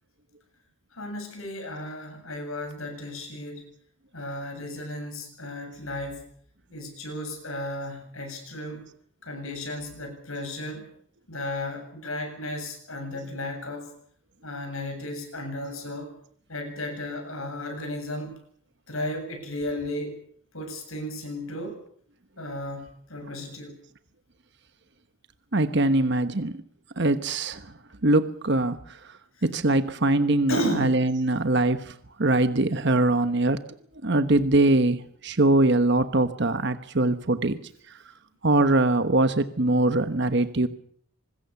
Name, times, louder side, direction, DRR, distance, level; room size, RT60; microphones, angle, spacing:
voice 1, 0.9-3.6 4.1-6.2 6.7-8.9 9.2-10.9 11.3-13.9 14.4-16.1 16.5-18.4 18.9-20.2 20.5-21.8 22.4-23.8 30.5-31.0, left 1 dB, 70° left, 5 dB, 7.7 m, -34 dB
voice 2, 25.5-26.5 27.0-27.7 28.0-29.0 29.4-31.9 32.2-33.6 34.0-37.6 38.4-40.7, right 2 dB, 50° right, 10 dB, 1.2 m, -22 dB
25.0 x 21.0 x 7.1 m, 0.63 s
head